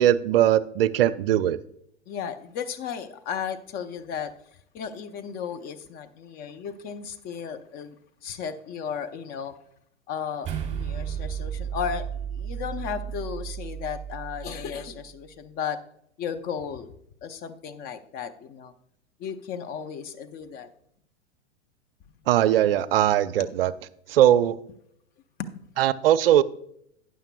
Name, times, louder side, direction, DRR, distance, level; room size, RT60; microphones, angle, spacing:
voice 1, 0.0-1.6 22.3-23.7 24.1-24.6 25.8-26.4, right 11 dB, 55° right, 17 dB, 0.5 m, -20 dB
voice 2, 2.1-4.3 4.7-8.0 8.2-9.6 10.1-15.8 16.2-16.9 17.2-18.7 19.2-20.7 23.4-23.5 25.4-25.5, left 7 dB, 25° left, 9 dB, 0.6 m, -34 dB
sound 1, 10.4-15.0, right 8 dB, 20° right, 2.6 m, -33 dB
12.5 x 9.3 x 2.2 m, 0.72 s
figure-of-eight pair, 100°, 35 cm